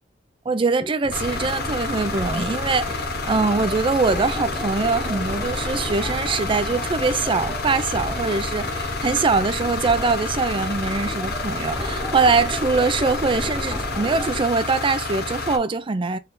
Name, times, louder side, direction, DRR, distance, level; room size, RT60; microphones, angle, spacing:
voice 1, 0.5-16.2, right 4 dB, 25° right, 0.4 m, -23 dB
sound 1, 1.0-14.4, equal, 10° right, 0.9 m, -33 dB
sound 2, 1.1-15.6, left 3 dB, 55° left, 0.9 m, -29 dB
4.0 x 2.7 x 3.8 m
head